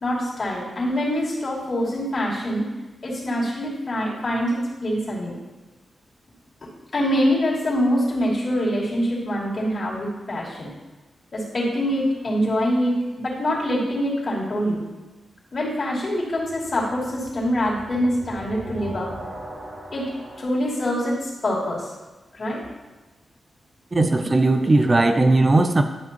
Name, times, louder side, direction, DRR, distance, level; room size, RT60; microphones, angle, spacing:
voice 1, 0.0-2.6 3.0-5.4 6.9-10.7 11.3-14.8 15.5-19.1 19.9-20.1 20.4-21.9 22.3-22.6, equal, 45° left, -5 dB, 2.9 m, -24 dB
sound 1, 11.7-12.6 16.2-20.5, right 1 dB, 50° right, 1.4 m, -40 dB
voice 2, 23.9-25.8, right 2 dB, 30° right, 7 dB, 0.5 m, -18 dB
11.5 x 5.8 x 3.0 m, 1.2 s
cardioid pair, 75°, 0 cm